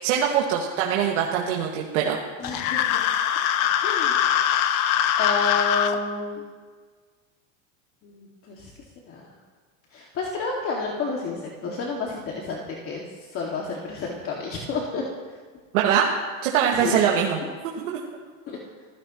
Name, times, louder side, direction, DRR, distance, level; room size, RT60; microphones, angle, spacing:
voice 1, 0.0-2.2 15.7-16.1 16.4-17.4 17.9-18.0, right 8 dB, 85° right, -2 dB, 2.1 m, -22 dB
sound 1, 2.4-5.9, left 10 dB, 55° left, 1.1 m, -22 dB
voice 2, 2.4-3.1 3.8-4.2 5.2-6.4 8.0-8.7 9.1-9.3 9.9-13.0 13.3-15.1 16.7-17.0 17.4-17.5 18.5-18.6, left 4 dB, 35° left, -2 dB, 2.3 m, -30 dB
28.5 x 16.0 x 3.1 m, 1.5 s
supercardioid pair, 150°, 37 cm